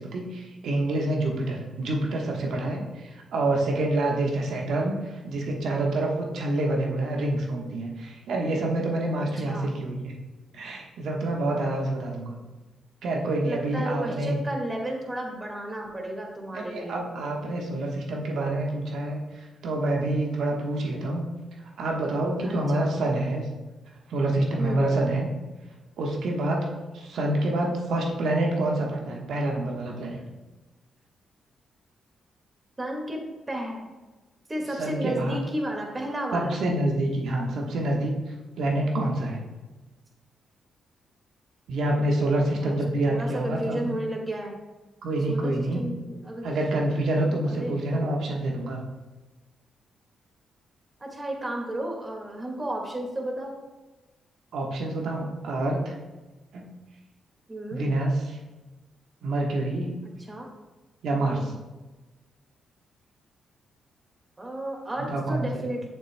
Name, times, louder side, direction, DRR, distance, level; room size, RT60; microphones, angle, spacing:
voice 1, 0.0-10.1 10.5-12.4 13.0-14.4 16.5-21.3 21.8-23.4 24.1-25.3 26.0-26.7 26.9-30.2 34.8-35.4 36.3-38.1 38.6-39.4 41.7-44.0 45.0-45.8 46.4-48.8 54.5-55.9 56.5-56.7 57.7-58.4 59.2-59.9 61.0-61.5 65.1-65.6, right 1 dB, 70° right, 0 dB, 1.2 m, -27 dB
voice 2, 9.2-9.7 13.4-17.0 22.4-22.9 24.6-24.9 32.8-33.2 33.5-33.9 34.5-36.6 42.5-42.8 43.1-44.5 45.3-46.5 47.2-48.1 51.0-53.5 57.5-57.8 60.3-60.5 61.2-61.4 64.4-65.9, right 1 dB, 30° right, 1 dB, 1.9 m, -33 dB
8.2 x 6.6 x 2.2 m, 1.2 s
supercardioid pair, 50°, 0 cm